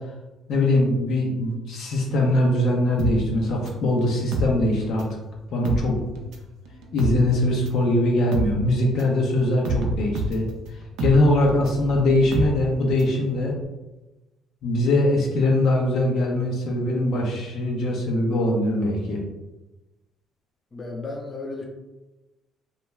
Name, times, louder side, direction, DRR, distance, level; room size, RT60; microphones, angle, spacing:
voice 1, 0.5-5.1 5.5-6.0 6.9-10.5 11.0-13.6 14.6-19.2, left 1 dB, 70° left, -1 dB, 0.6 m, -22 dB
sound 1, 3.0-5.2 5.5-13.2 13.5-13.6, right 1 dB, 80° right, 0.4 m, -29 dB
voice 2, 20.7-21.6, left 3 dB, 30° left, 0 dB, 0.5 m, -33 dB
2.3 x 2.2 x 3.0 m, 1.1 s
cardioid pair, 80°, 0 cm